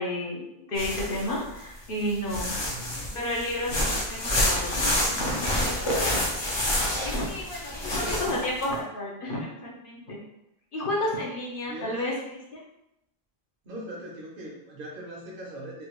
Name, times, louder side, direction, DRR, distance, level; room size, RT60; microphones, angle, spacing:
voice 1, 0.0-2.6 3.1-6.3 7.0-10.2 10.7-12.6, left 1 dB, 60° left, -3 dB, 0.9 m, -32 dB
sound 1, 0.8-1.5 2.0-8.7, left 1 dB, 35° left, 0.5 m, -28 dB
voice 2, 2.6-3.2 6.9-7.2 7.8-8.2 11.6-12.0 13.6-15.9, right 1 dB, 60° right, -2 dB, 0.9 m, -40 dB
3.3 x 2.4 x 3.0 m, 0.84 s
omnidirectional pair, 1.1 m